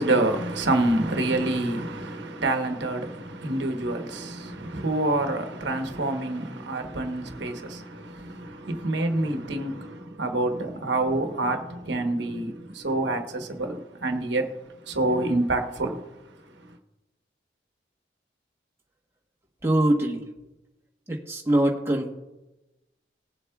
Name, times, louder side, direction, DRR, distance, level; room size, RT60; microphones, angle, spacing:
voice 1, 0.0-14.4 14.8-16.0, right 2 dB, 75° right, 1.1 m, -27 dB
voice 2, 19.6-20.2 21.1-22.1, right 1 dB, 15° right, 1.1 m, -23 dB
20.0 x 7.5 x 2.4 m
head